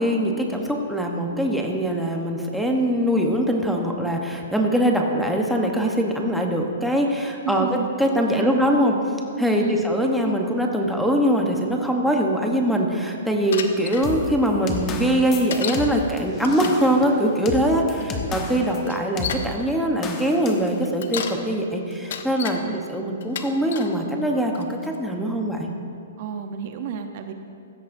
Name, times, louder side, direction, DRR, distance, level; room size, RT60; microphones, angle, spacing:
voice 1, 0.0-9.0 9.4-22.6 22.9-25.7, equal, ahead, 0 dB, 1.0 m, -22 dB
voice 2, 7.4-7.9 8.3-8.6 9.6-9.9 17.9-18.3 22.5-22.9 26.2-27.3, right 9 dB, 50° right, 6 dB, 0.8 m, -31 dB
Bicycle, 13.5-14.1 15.5-15.9 16.4-16.9 18.0-18.1 18.8-19.5 20.8-21.4 21.9-22.6 23.2-23.9 24.5-25.0, left 7 dB, 65° left, 0.9 m, -32 dB
sound 1, 14.0-18.8 19.2-19.4 20.0-20.7, left 4 dB, 25° left, 1.1 m, -32 dB
16.0 x 13.0 x 2.7 m, 2.5 s
hypercardioid pair, 145°, 0 cm